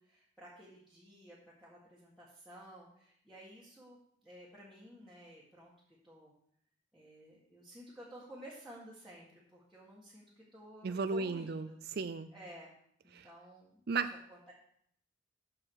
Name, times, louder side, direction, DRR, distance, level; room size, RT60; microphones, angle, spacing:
voice 1, 0.0-4.0 4.2-5.7 6.0-6.3 6.9-11.8 12.3-12.7 13.0-13.8 14.3-14.5, right 1 dB, ahead, -9 dB, 1.9 m, -53 dB
voice 2, 10.8-12.3 13.1-13.3 13.9-14.1, right 4 dB, 55° right, 11 dB, 0.4 m, -35 dB
13.5 x 4.8 x 4.8 m, 0.67 s
head